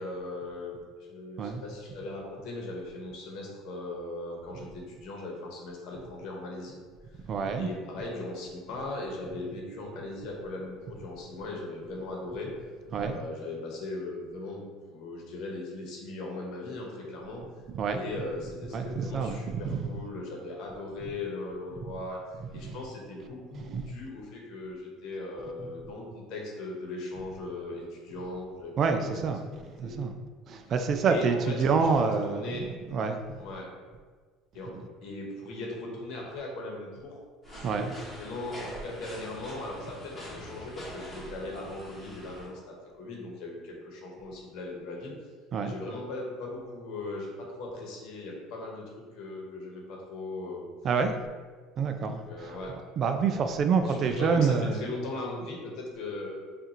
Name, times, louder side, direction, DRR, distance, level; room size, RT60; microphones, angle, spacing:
voice 1, 0.0-6.7 7.5-12.5 13.0-14.6 14.9-17.4 17.9-22.2 22.5-29.2 29.4-30.1 30.6-30.7 31.1-31.9 32.2-32.6 33.4-33.7 34.5-34.8 35.0-37.2 37.6-45.1 45.6-50.7 52.0-52.7 53.8-56.4, left 2 dB, 65° left, -1 dB, 1.1 m, -39 dB
voice 2, 7.2-7.7 12.9-13.2 17.7-18.0 18.7-19.9 22.6-22.8 23.7-23.8 28.8-29.4 29.8-30.1 30.5-33.4 34.7-34.9 37.6-37.9 45.5-45.7 50.8-51.2 51.8-52.6 53.0-54.9, right 5 dB, 40° right, 7 dB, 0.3 m, -27 dB
sound 1, 37.4-42.5, equal, 10° left, 1.2 m, -44 dB
5.4 x 2.5 x 2.9 m, 1.5 s
cardioid pair, 130°, 0 cm